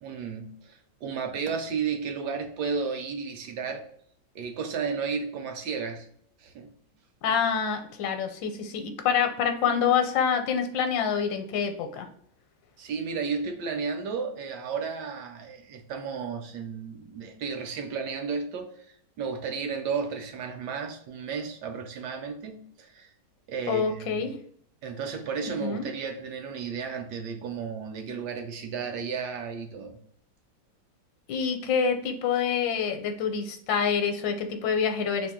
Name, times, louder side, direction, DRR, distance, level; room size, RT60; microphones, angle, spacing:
voice 1, 0.0-3.8 4.3-6.1 6.4-6.7 12.8-18.9 19.2-23.1 23.5-24.3 24.8-30.0, right 5 dB, 75° right, 1.1 m, -33 dB
voice 2, 7.2-12.1 23.7-24.4 25.4-25.8 31.3-35.3, left 7 dB, 85° left, 1.3 m, -27 dB
3.1 x 2.7 x 3.5 m
omnidirectional pair, 2.0 m